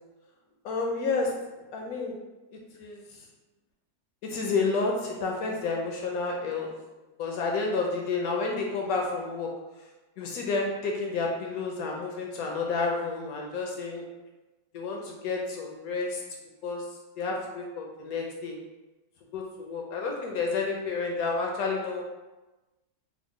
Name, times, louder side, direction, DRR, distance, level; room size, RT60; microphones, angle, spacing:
voice 1, 0.6-1.4 1.7-2.2 2.8-3.0 4.2-6.7 7.2-9.5 10.2-14.0 14.7-16.2 16.6-16.8 17.2-18.6 19.3-22.0, left 4 dB, 70° left, 0 dB, 0.8 m, -30 dB
3.5 x 2.0 x 3.6 m, 1.1 s
omnidirectional pair, 2.0 m